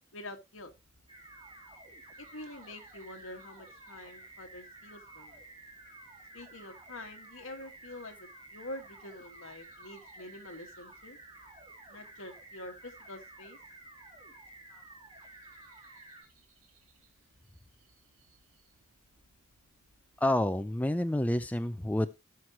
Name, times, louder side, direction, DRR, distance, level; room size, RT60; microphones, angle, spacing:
voice 1, 0.1-0.7 2.2-5.4 6.3-11.2 11.9-13.6, left 1 dB, 70° left, 4 dB, 1.9 m, -46 dB
sound 1, 0.5-20.5, right 2 dB, 85° right, 2.2 m, -69 dB
sound 2, 1.1-16.2, right 2 dB, 25° right, 2.8 m, -52 dB
voice 2, 20.2-22.1, left 1 dB, 5° left, 10 dB, 0.4 m, -29 dB
17.0 x 6.3 x 3.0 m, 0.24 s
head